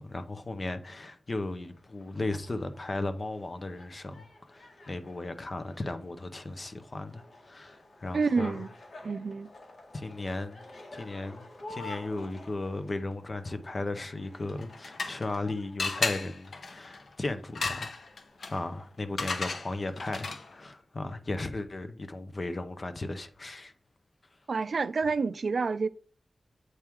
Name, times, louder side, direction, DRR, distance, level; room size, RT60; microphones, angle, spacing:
voice 1, 0.0-8.6 9.9-10.6 10.9-18.0 18.5-23.7, left 2 dB, 40° left, 0.8 m, -36 dB
sound 1, 1.4-20.6, left 2 dB, 65° left, 2.0 m, -51 dB
voice 2, 8.1-8.7 9.0-9.5 24.5-25.9, right 4 dB, 65° right, 0.4 m, -28 dB
sound 2, 14.5-15.4 15.8-20.6, left 4 dB, 80° left, 0.8 m, -35 dB
8.1 x 3.6 x 4.6 m
wide cardioid pair, 115°, 0 cm